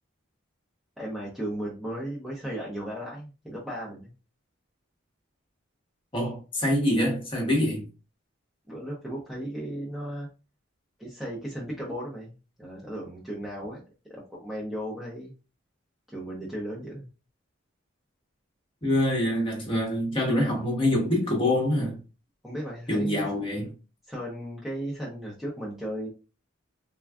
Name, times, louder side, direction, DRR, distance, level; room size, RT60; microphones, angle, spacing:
voice 1, 1.0-4.1 8.7-10.3 11.0-13.8 14.1-15.3 16.1-17.1 22.4-23.3 24.1-26.1, equal, ahead, 0.6 m, -35 dB
voice 2, 6.1-7.8 18.8-22.0 22.9-23.7, left 1 dB, 25° left, 1.0 m, -25 dB
3.4 x 2.2 x 2.3 m
head